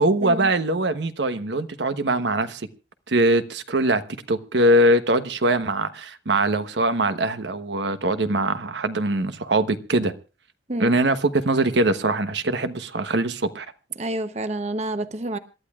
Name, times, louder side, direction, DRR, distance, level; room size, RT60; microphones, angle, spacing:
voice 1, 0.0-2.7 3.1-4.0 4.3-10.1 10.8-13.7, right 1 dB, 85° right, 1.1 m, -22 dB
voice 2, 14.0-15.4, right 1 dB, 40° right, 0.9 m, -28 dB
27.5 x 12.0 x 2.4 m
head